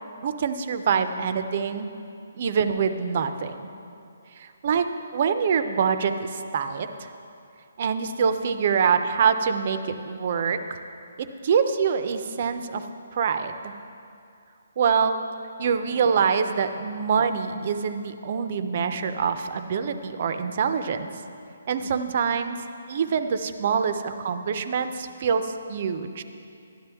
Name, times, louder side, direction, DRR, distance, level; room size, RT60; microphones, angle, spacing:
voice 1, 0.2-1.9 2.4-3.7 4.4-4.9 5.1-7.1 7.8-10.8 11.2-12.8 13.1-13.7 14.8-15.2 15.6-21.1 21.7-22.6 22.9-26.2, right 6 dB, 35° right, 9 dB, 0.4 m, -25 dB
12.5 x 10.5 x 3.5 m, 2.5 s
hypercardioid pair, 175°, 0 cm